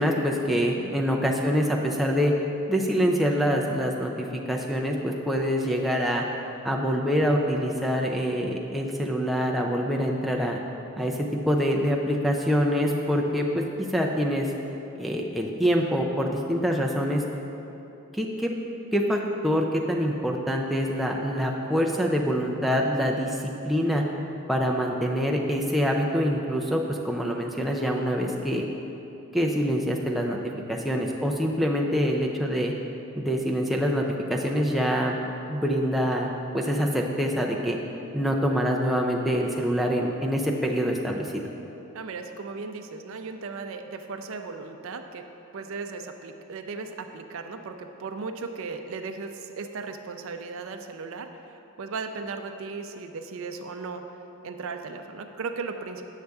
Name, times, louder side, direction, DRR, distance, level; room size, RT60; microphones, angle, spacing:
voice 1, 0.0-2.3 2.7-6.2 6.6-10.6 11.0-13.6 13.9-14.5 15.0-17.2 18.1-18.5 18.9-24.0 24.5-28.7 29.3-30.4 30.7-32.7 33.2-34.0 34.3-35.2 35.5-37.8 38.1-41.5, equal, ahead, -1 dB, 0.4 m, -25 dB
voice 2, 41.9-45.3 45.5-54.2 54.4-56.0, right 4 dB, 60° right, 6 dB, 0.4 m, -36 dB
8.1 x 6.5 x 3.4 m, 3.0 s
head